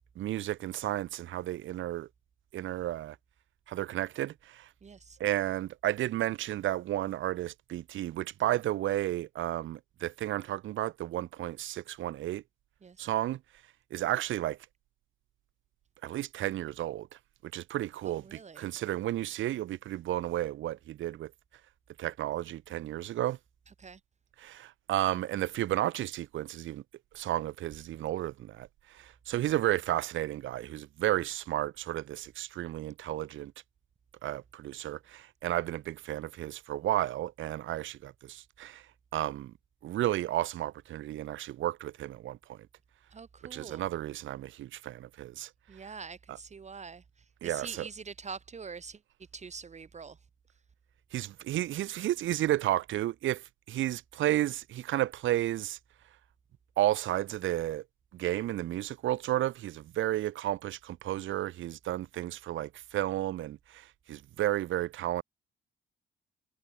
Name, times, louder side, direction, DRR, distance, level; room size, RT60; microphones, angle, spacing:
voice 1, 0.2-2.1 2.5-3.2 3.7-4.7 5.2-12.4 13.0-13.4 13.9-14.6 16.0-17.1 17.4-21.3 22.0-23.4 24.4-26.8 27.1-33.5 34.2-38.8 39.1-39.5 39.8-42.6 43.5-45.5 46.3-46.4 47.4-47.9 51.1-55.8 56.8-57.8 58.1-65.2, right 14 dB, 75° right, 1.1 m, -32 dB
voice 2, 4.8-5.2 12.8-13.1 18.0-18.6 23.8-24.0 43.1-43.8 45.7-47.0 47.4-49.0 49.3-50.2, right 5 dB, 35° right, 1.7 m, -44 dB
cardioid pair, 90°, 20 cm